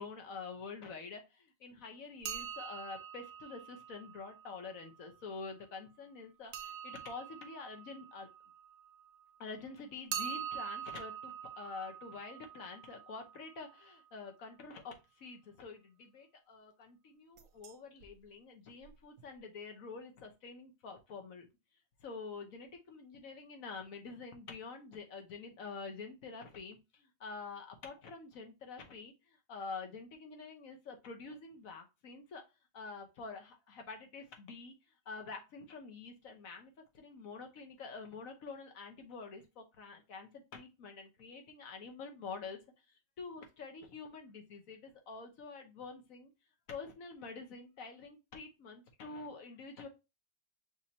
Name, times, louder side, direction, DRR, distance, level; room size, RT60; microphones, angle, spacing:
voice 1, 0.0-8.3 9.4-21.5 22.0-32.4 32.7-34.7 35.1-42.6 42.9-46.3 46.7-49.9, left 4 dB, 60° left, 4 dB, 1.3 m, -47 dB
sound 1, 2.2-4.9 6.5-9.2 10.1-13.9 17.4-17.7 18.0-18.1 18.8-18.9 19.2-19.3, right 9 dB, 80° right, 1.2 m, -45 dB
6.3 x 2.7 x 2.8 m, 0.25 s
omnidirectional pair, 1.7 m